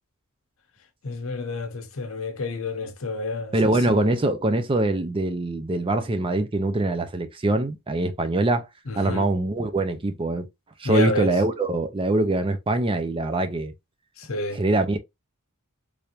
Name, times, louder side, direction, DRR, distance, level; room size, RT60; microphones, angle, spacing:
voice 1, 1.0-3.9 8.9-9.3 10.8-11.3 14.2-14.6, left 3 dB, 65° left, 0.8 m, -29 dB
voice 2, 3.5-8.7 8.9-10.5 10.8-13.7 14.5-15.0, right 2 dB, 25° right, 0.4 m, -23 dB
3.3 x 2.5 x 2.9 m
head